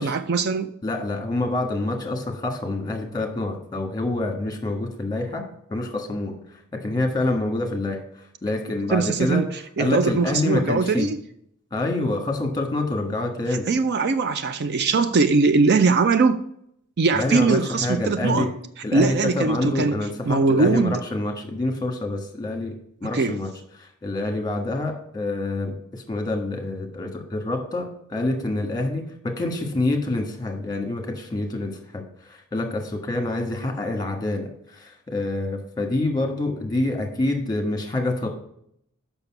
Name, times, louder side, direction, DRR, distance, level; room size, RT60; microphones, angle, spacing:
voice 1, 0.0-0.7 8.9-11.2 13.7-16.4 17.0-18.5 18.9-20.0 20.3-21.0 23.1-23.3, right 4 dB, 45° right, 11 dB, 0.4 m, -21 dB
voice 2, 0.8-5.4 5.7-9.4 9.8-11.1 11.7-13.7 17.1-18.5 18.8-22.7 23.0-23.5 23.8-38.3, left 2 dB, 20° left, 3 dB, 1.5 m, -27 dB
6.8 x 5.8 x 5.9 m, 0.72 s
head